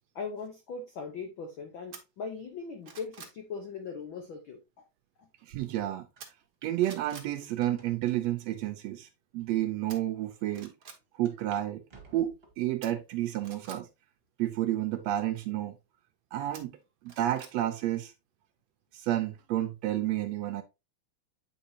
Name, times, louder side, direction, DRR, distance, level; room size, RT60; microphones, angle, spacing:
voice 1, 0.1-4.8 5.2-5.3, left 5 dB, 80° left, 1.1 m, -40 dB
sound 1, 1.9-2.0 2.5-3.4 6.2-6.5 6.8-7.3 9.9-10.0 10.5-11.0 12.8-13.8 16.5-17.5 17.9-18.0, right 6 dB, 55° right, 1.0 m, -48 dB
voice 2, 5.4-6.1 6.6-10.7 11.2-11.8 12.1-13.9 14.4-15.8 16.3-16.8 17.0-18.1 18.9-20.6, right 13 dB, 75° right, 1.6 m, -31 dB
sound 2, 6.2-6.3 6.6-6.8 7.1-8.0 8.7-8.8 9.5-9.6 9.9-10.0 11.2-11.6 11.9-12.7 13.2-13.7 14.2-14.3 15.4-15.9, right 4 dB, 25° right, 1.3 m, -56 dB
8.9 x 4.7 x 2.8 m
omnidirectional pair, 3.4 m